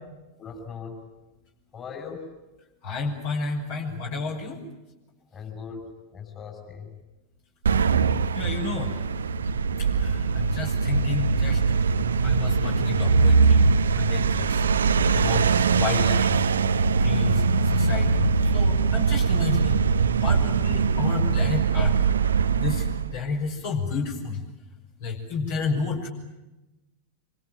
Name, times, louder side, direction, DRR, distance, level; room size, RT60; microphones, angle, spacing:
voice 1, 0.4-1.0 1.7-2.3 5.3-6.9, left 5 dB, 25° left, 3 dB, 6.0 m, -39 dB
voice 2, 2.8-4.6 8.3-9.0 9.8-11.6 12.2-14.6 15.1-16.3 17.0-19.9 20.2-22.0 22.6-24.4 25.0-26.1, left 4 dB, 50° left, 1 dB, 6.0 m, -31 dB
sound 1, 7.7-23.2, right 5 dB, 70° right, 0.9 m, -22 dB
27.0 x 26.0 x 7.5 m, 1.0 s
figure-of-eight pair, 90°, 0 cm